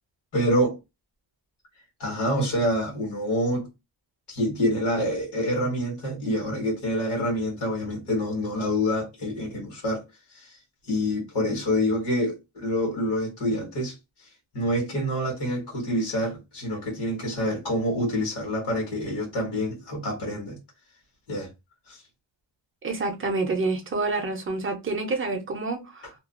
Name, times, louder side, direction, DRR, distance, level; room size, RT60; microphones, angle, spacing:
voice 1, 0.3-0.8 2.0-3.7 4.3-10.0 10.3-10.6 10.8-14.0 14.5-20.6 21.3-21.5 21.9-22.0, equal, 55° left, 1.3 m, -27 dB
voice 2, 22.8-26.1, right 3 dB, 25° right, 0.6 m, -28 dB
2.5 x 2.3 x 2.4 m
wide cardioid pair, 155°, 48 cm